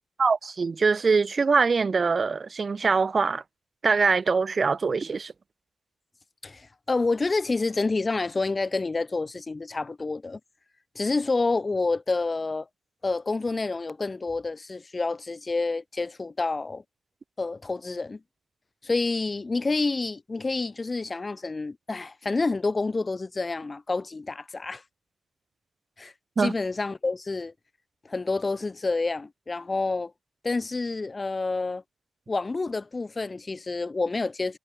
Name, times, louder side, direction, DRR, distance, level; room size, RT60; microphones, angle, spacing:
voice 1, 0.2-3.4 3.8-5.3 26.4-26.5, right 4 dB, 30° right, 1.9 m, -23 dB
voice 2, 6.4-10.4 10.9-12.7 13.0-16.8 17.4-18.2 18.8-24.8 26.0-26.1 26.4-27.5 28.0-30.1 30.4-31.8 32.3-34.6, left 3 dB, 20° left, 1.4 m, -28 dB
wide cardioid pair, 155°, 0 cm